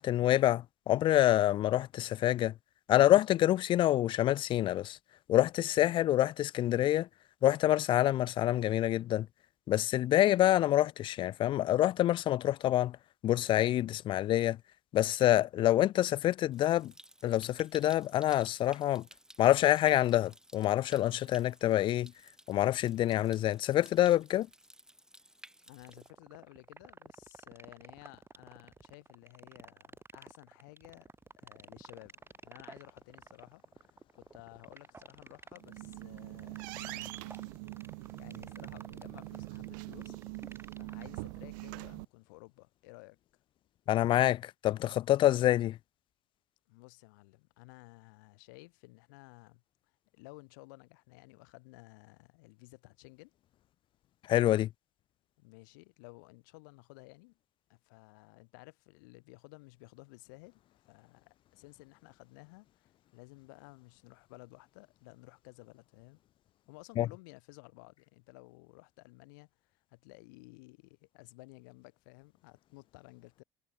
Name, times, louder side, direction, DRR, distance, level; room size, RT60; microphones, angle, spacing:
voice 1, 0.0-2.5 2.9-5.0 5.3-7.1 7.4-9.3 9.7-13.0 13.2-14.6 14.9-16.9 17.2-19.0 19.4-22.1 22.5-24.5 43.9-45.8 54.3-54.7 67.0-67.1, left 13 dB, 50° left, 0.5 m, -26 dB
Stream, 16.5-26.1, right 1 dB, 5° right, 2.5 m, -57 dB
voice 2, 25.7-31.1 31.4-32.1 32.4-40.2 40.8-43.2 46.7-49.6 50.1-53.3 55.4-57.3 57.7-66.2 66.7-73.4, left 28 dB, 70° left, 5.6 m, -55 dB
sound 1, 25.8-41.8, right 4 dB, 20° right, 1.8 m, -51 dB
sound 2, 35.5-42.0, right 29 dB, 70° right, 2.2 m, -43 dB
hypercardioid pair, 60°, 11 cm